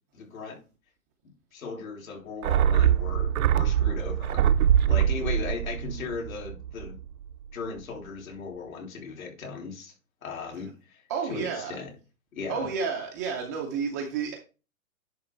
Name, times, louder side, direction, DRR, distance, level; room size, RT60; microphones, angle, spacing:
voice 1, 0.1-0.6 1.5-7.0 7.5-9.9 10.2-11.9 12.3-12.7, left 4 dB, 70° left, 3.6 m, -37 dB
sound 1, 2.4-7.0 7.3-7.4, right 10 dB, 75° right, 0.7 m, -23 dB
voice 2, 11.1-11.7 12.5-14.3, right 6 dB, 15° right, 0.4 m, -30 dB
10.5 x 3.6 x 4.4 m
hypercardioid pair, 150°, 43 cm